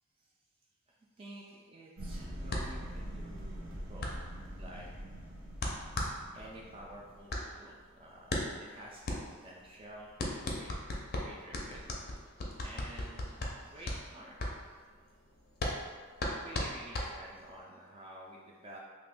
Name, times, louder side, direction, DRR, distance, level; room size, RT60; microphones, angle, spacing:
voice 1, 1.2-4.1 4.6-4.9 6.3-10.7 11.2-11.9 12.6-14.8 16.2-18.8, right 1 dB, 25° right, -3 dB, 0.3 m, -51 dB
sound 1, 2.0-7.3, equal, 90° right, 0.9 m, -44 dB
sound 2, 2.5-17.6, left 1 dB, 50° left, 0.5 m, -38 dB
2.9 x 2.5 x 3.4 m, 1.5 s
head